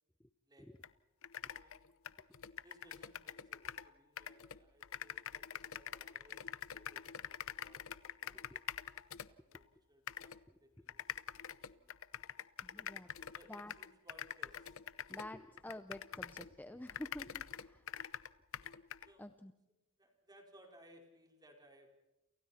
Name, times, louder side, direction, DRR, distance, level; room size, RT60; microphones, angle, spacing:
sound 1, 0.8-0.9 1.2-3.9 4.2-9.6 10.1-10.4 10.9-16.6 16.9-19.1, left 9 dB, 70° left, 0.8 m, -45 dB
voice 1, 1.6-1.9 2.6-8.5 9.3-11.0 11.5-12.0 12.7-12.9 13.1-14.8 17.7-18.0 19.0-19.3 20.0-22.0, equal, 20° right, 2 dB, 4.8 m, -64 dB
voice 2, 8.3-8.6 12.6-13.1 13.5-13.7 15.1-17.9 19.2-19.5, left 1 dB, 10° left, 10 dB, 0.7 m, -49 dB
29.0 x 28.5 x 4.3 m, 0.96 s
head